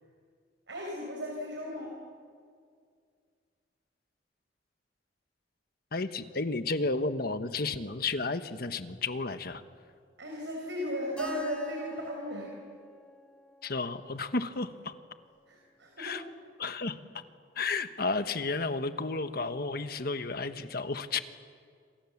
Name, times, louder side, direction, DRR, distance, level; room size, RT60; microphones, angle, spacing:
voice 1, 0.7-1.9 10.2-12.5 15.5-16.2, equal, 85° right, 0 dB, 5.0 m, -36 dB
voice 2, 5.9-9.6 13.6-14.9 16.0-16.2 16.6-17.2 17.5-21.2, left 3 dB, 55° left, 9 dB, 1.3 m, -32 dB
Keyboard (musical), 11.2-15.7, left 1 dB, 5° left, 2.4 m, -49 dB
28.0 x 26.0 x 7.3 m, 2.2 s
head